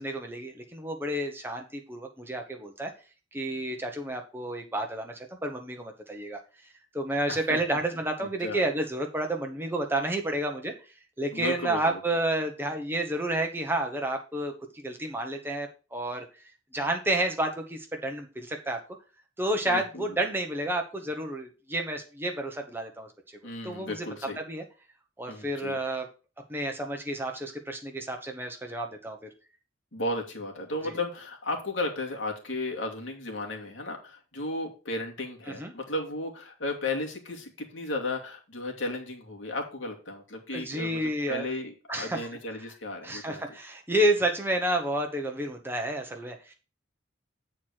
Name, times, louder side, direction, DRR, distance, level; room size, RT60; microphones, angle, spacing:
voice 1, 0.0-2.9 3.3-6.4 6.9-10.7 11.2-16.2 16.7-18.8 19.4-23.1 23.6-24.0 24.4-24.6 25.2-26.1 26.5-29.2 30.8-31.0 35.5-35.7 40.5-41.5 41.9-42.3 43.0-46.5, right 1 dB, 10° right, 3 dB, 1.1 m, -30 dB
voice 2, 8.2-8.6 11.3-12.0 19.7-20.2 23.4-24.4 25.3-25.8 29.9-43.4, left 2 dB, 75° left, 1 dB, 2.2 m, -34 dB
8.2 x 4.4 x 6.4 m, 0.33 s
head